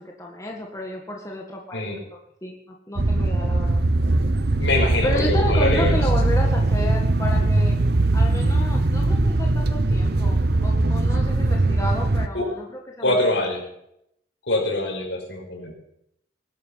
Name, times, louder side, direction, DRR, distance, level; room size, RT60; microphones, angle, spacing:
voice 1, 0.0-2.0 2.4-3.8 5.0-7.8 8.1-13.2, left 1 dB, 15° left, 0 dB, 1.9 m, -32 dB
sound 1, 3.0-12.3, right 2 dB, 60° right, 0.9 m, -20 dB
voice 2, 4.6-6.0 12.3-12.5 13.0-13.6 14.5-15.7, left 2 dB, 70° left, -1 dB, 6.0 m, -24 dB
20.0 x 12.0 x 5.8 m, 0.78 s
head